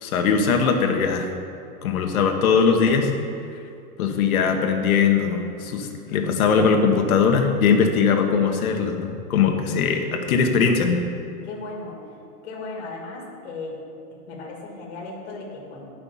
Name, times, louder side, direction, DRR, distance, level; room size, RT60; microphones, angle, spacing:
voice 1, 0.0-1.3 1.8-3.1 4.0-11.0, left 5 dB, 65° left, 4 dB, 1.3 m, -20 dB
voice 2, 11.4-12.0 12.4-13.8 14.3-15.9, left 3 dB, 45° left, -2 dB, 2.0 m, -36 dB
10.0 x 5.8 x 5.5 m, 2.5 s
supercardioid pair, 170°, 45 cm